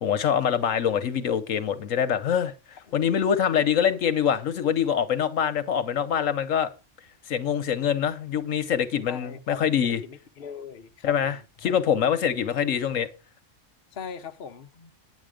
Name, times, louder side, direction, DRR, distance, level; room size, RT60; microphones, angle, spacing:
voice 1, 0.0-6.7 7.3-10.0 11.0-13.1, left 8 dB, 80° left, 1.3 m, -25 dB
voice 2, 9.1-9.6 10.0-11.3 11.6-11.7 13.9-14.9, left 7 dB, 50° left, 1.1 m, -39 dB
9.7 x 8.4 x 5.0 m
omnidirectional pair, 1.3 m